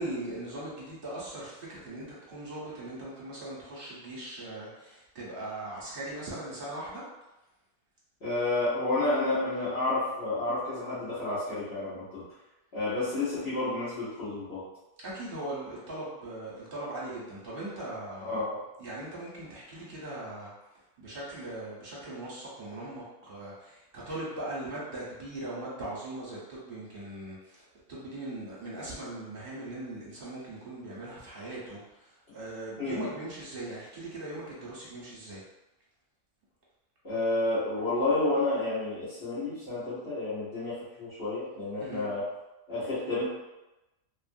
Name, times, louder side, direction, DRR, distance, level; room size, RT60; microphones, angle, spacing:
voice 1, 0.0-7.0 15.0-18.4 18.8-35.4 41.8-42.1, right 1 dB, 50° right, -7 dB, 1.0 m, -40 dB
voice 2, 8.2-12.2 12.7-14.6 18.2-18.6 32.8-33.1 37.0-42.2 42.7-43.2, left 2 dB, 50° left, -15 dB, 1.2 m, -30 dB
2.7 x 2.5 x 2.5 m, 0.98 s
omnidirectional pair, 1.4 m